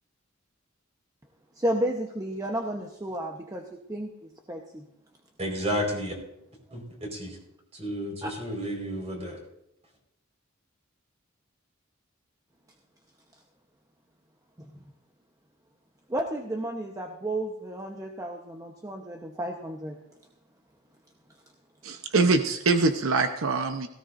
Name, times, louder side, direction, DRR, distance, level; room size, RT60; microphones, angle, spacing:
voice 1, 1.6-4.8 8.2-8.3 14.6-14.7 16.1-20.0, right 1 dB, 15° right, 2 dB, 1.0 m, -32 dB
voice 2, 5.4-6.2 6.7-7.4 7.7-9.4, equal, 30° right, 0 dB, 4.7 m, -32 dB
voice 3, 21.8-23.9, right 3 dB, 80° right, 7 dB, 0.9 m, -24 dB
17.5 x 16.0 x 2.6 m, 0.85 s
head